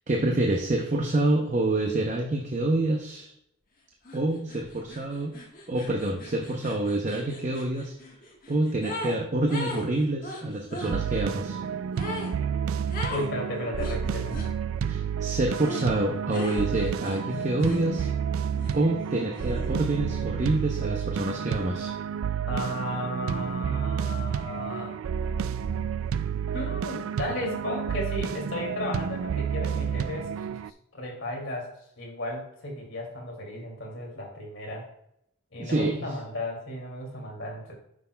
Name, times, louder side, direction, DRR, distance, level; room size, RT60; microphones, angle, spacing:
voice 1, 0.1-3.3 4.1-5.3 5.7-7.9 8.5-11.6 14.9-18.1 18.7-21.9 35.6-36.1, right 2 dB, 35° right, 1 dB, 0.7 m, -27 dB
sound 1, 4.0-4.2 4.5-9.2 9.5-10.9 11.9-12.3 12.9-13.3 13.8-14.5 15.6-15.9 16.3-18.2 18.5-19.9, left 1 dB, 40° left, 1.4 m, -39 dB
sound 2, 10.8-30.7, right 7 dB, 75° right, 0.3 m, -30 dB
voice 2, 13.1-14.4 22.5-25.0 26.5-30.6 30.9-31.7 32.0-34.9 35.5-37.7, left 1 dB, 65° left, -1 dB, 2.4 m, -34 dB
9.5 x 6.3 x 2.2 m, 0.77 s
head